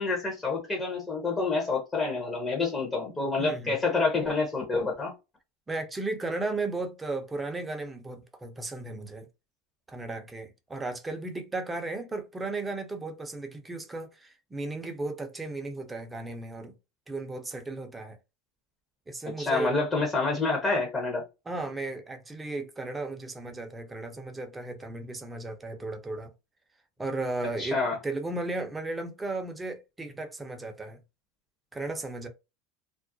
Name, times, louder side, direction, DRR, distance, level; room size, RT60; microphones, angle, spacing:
voice 1, 0.0-5.1 19.4-21.2 27.6-28.0, left 3 dB, 20° left, 0.7 m, -28 dB
voice 2, 3.4-3.8 5.7-9.3 9.9-16.7 17.1-18.2 19.1-19.8 21.5-26.3 27.0-31.0 31.7-32.3, right 2 dB, 10° right, 0.5 m, -35 dB
2.4 x 2.0 x 2.5 m
supercardioid pair, 120°, 0 cm